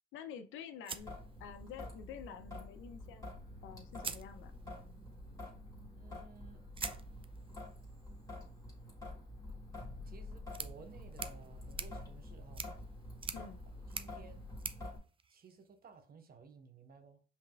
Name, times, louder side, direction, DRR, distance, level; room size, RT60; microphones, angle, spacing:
voice 1, 0.1-1.1 1.4-3.3 3.6-4.5 13.3-13.6, left 8 dB, 85° left, 0.6 m, -49 dB
sound 1, 0.8-2.0 3.3-3.4 3.9-4.9 6.7-15.9, right 5 dB, 25° right, 0.4 m, -48 dB
Traffic noise roadway noise / Drip / Trickle dribble, 1.0-15.0, left 1 dB, 15° left, 1.9 m, -48 dB
voice 2, 5.9-6.7 10.0-12.7 13.9-14.4 15.3-17.2, right 5 dB, 50° right, 0.9 m, -56 dB
5.4 x 3.4 x 2.3 m
cardioid pair, 90°, 20 cm